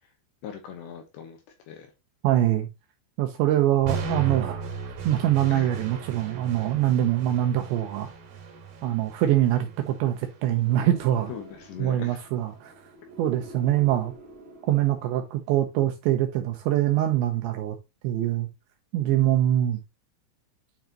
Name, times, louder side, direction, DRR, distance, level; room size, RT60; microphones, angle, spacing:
voice 1, 0.4-1.4 1.7-1.9 5.5-5.7 11.3-12.2, left 7 dB, 75° left, 2.8 m, -40 dB
voice 2, 2.2-2.7 3.2-8.1 8.8-11.3 11.8-12.7 13.2-14.1 14.7-17.8 18.0-18.5 18.9-19.8, right 12 dB, 80° right, 2.7 m, -24 dB
sound 1, 3.9-11.9, right 5 dB, 50° right, 3.9 m, -37 dB
sound 2, 10.7-15.3, right 1 dB, 20° right, 2.1 m, -47 dB
9.2 x 4.8 x 2.9 m
omnidirectional pair, 5.9 m